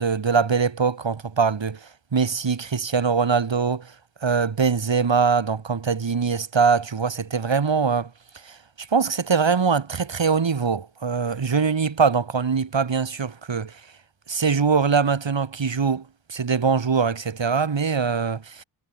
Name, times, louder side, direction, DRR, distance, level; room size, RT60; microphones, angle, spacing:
voice 1, 0.0-1.8 2.1-3.9 4.2-8.1 8.4-13.7 14.3-16.0 16.3-18.6, right 5 dB, 60° right, 5.3 m, -22 dB
cardioid pair, 60°, 49 cm